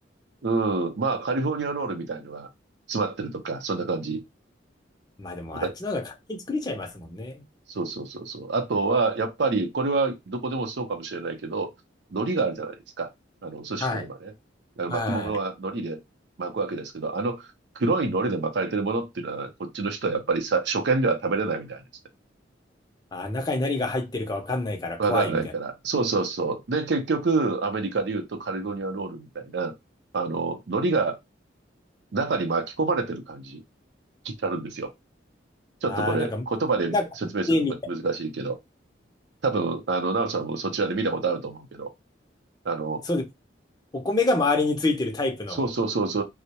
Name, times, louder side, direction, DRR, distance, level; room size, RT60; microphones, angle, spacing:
voice 1, 0.4-2.5 2.9-4.2 5.5-5.8 7.7-11.7 12.1-13.1 13.4-14.3 14.8-16.0 16.4-17.5 17.8-21.8 25.0-29.7 30.1-31.2 32.1-33.6 34.2-34.9 35.8-37.0 37.3-38.6 39.4-41.9 42.6-43.0 45.5-46.2, right 3 dB, 65° right, 0.5 m, -27 dB
voice 2, 5.2-6.0 6.3-7.4 13.8-14.1 14.9-15.4 23.1-25.4 35.9-36.4 36.9-37.1 37.5-37.7 43.1-43.2 43.9-45.6, left 2 dB, 20° left, 0.5 m, -27 dB
2.2 x 2.0 x 2.8 m
head